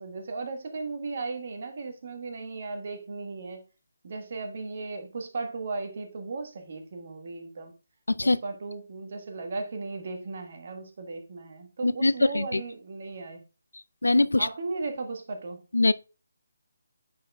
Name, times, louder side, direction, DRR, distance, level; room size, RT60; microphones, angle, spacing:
voice 1, 0.0-3.6 4.0-7.7 8.2-13.4 14.4-15.6, right 3 dB, 50° right, 1.3 m, -36 dB
voice 2, 8.1-8.4 11.8-12.6 14.0-14.5 15.7-15.9, left 2 dB, 80° left, 0.3 m, -22 dB
10.0 x 4.5 x 2.3 m
figure-of-eight pair, 150°, 0 cm